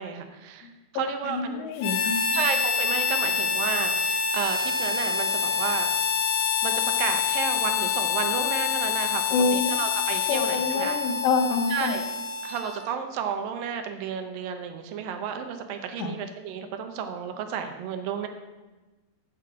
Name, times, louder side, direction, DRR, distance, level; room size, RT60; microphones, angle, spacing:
voice 1, 0.0-1.7 2.3-5.9 6.6-9.2 9.5-11.0 11.7-12.1 12.4-18.3, right 7 dB, 70° right, 6 dB, 2.3 m, -32 dB
voice 2, 1.2-2.4 9.3-9.7 10.3-11.9 16.0-16.2, left 4 dB, 80° left, 6 dB, 3.2 m, -26 dB
Harmonica, 1.8-12.9, left 6 dB, 65° left, 2.4 m, -26 dB
13.0 x 8.7 x 5.0 m, 1.2 s
omnidirectional pair, 5.0 m